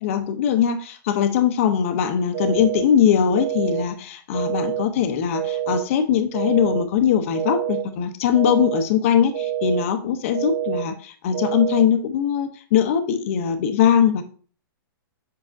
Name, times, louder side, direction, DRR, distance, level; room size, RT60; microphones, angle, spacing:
voice 1, 0.0-14.2, left 8 dB, 35° left, 8 dB, 0.7 m, -21 dB
sound 1, 2.3-2.8 3.3-3.8 4.3-4.8 5.3-5.8 6.3-6.8 7.3-7.8 8.3-8.8 9.3-9.8 10.3-10.8 11.3-11.8, right 11 dB, 75° right, 2.4 m, -26 dB
7.3 x 5.7 x 2.6 m, 0.42 s
hypercardioid pair, 170°, 12 cm